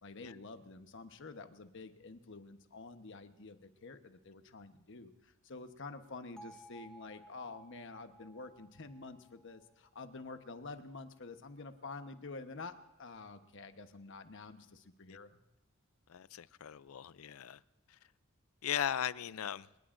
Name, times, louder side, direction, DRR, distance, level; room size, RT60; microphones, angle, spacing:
voice 1, 0.0-12.7 13.0-15.4, left 3 dB, 60° left, 1.1 m, -48 dB
Bell, 6.4-10.4, right 2 dB, 5° left, 1.8 m, -57 dB
voice 2, 16.1-17.6 17.9-18.0 18.6-19.7, left 9 dB, 80° left, 0.4 m, -38 dB
28.0 x 19.0 x 2.6 m
head